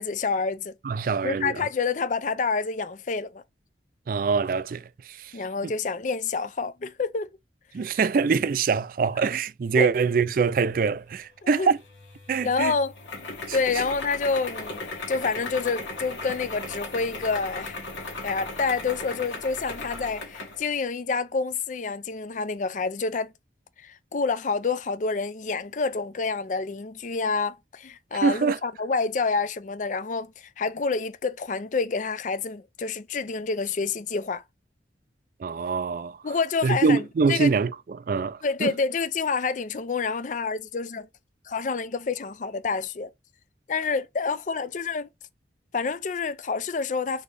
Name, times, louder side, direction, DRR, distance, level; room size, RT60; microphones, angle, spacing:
voice 1, 0.0-0.7 1.2-3.4 5.3-7.3 9.8-9.9 11.4-11.7 12.4-12.9 13.5-17.8 18.2-23.3 23.8-34.4 36.2-37.0 37.3-37.5 38.4-41.1 41.5-43.1 43.7-45.1 45.7-47.2, left 4 dB, 45° left, 0.4 m, -28 dB
voice 2, 0.8-1.7 4.1-5.7 7.7-11.8 12.3-12.8 13.5-13.8 28.2-28.6 35.4-36.2 36.6-38.7, right 5 dB, 50° right, 0.3 m, -24 dB
sound 1, 11.8-20.6, left 2 dB, 80° left, 1.7 m, -37 dB
4.0 x 3.6 x 3.3 m
head